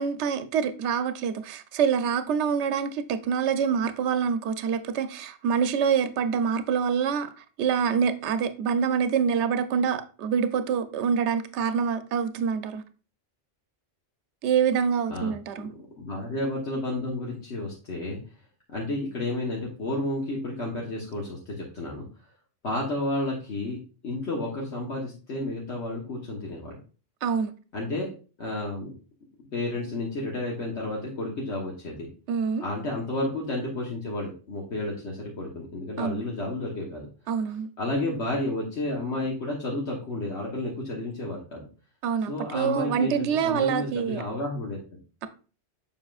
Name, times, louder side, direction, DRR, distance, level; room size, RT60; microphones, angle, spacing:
voice 1, 0.0-7.3 7.6-12.8 14.4-15.7 27.2-27.5 32.3-32.6 36.0-36.2 37.3-37.7 42.0-44.2, right 7 dB, 80° right, 0.9 m, -26 dB
voice 2, 15.6-18.2 18.7-22.1 22.6-26.8 27.7-28.1 28.4-28.9 29.5-32.1 32.6-37.1 37.8-41.7 42.3-44.8, left 2 dB, 70° left, 1.5 m, -31 dB
7.2 x 5.4 x 2.4 m
omnidirectional pair, 1.2 m